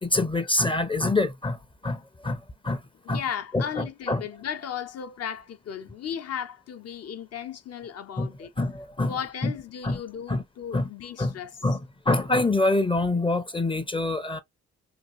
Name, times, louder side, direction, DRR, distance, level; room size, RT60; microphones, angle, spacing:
voice 1, 0.0-2.8 3.1-3.2 3.5-4.2 8.2-8.3 8.6-9.1 9.4-9.5 9.8-10.0 10.3-10.4 10.7-10.9 11.2-14.4, left 2 dB, 15° left, 0.5 m, -26 dB
voice 2, 3.0-8.5 9.0-11.5, left 8 dB, 55° left, 0.6 m, -35 dB
3.4 x 2.4 x 2.8 m
cardioid pair, 90°, 30 cm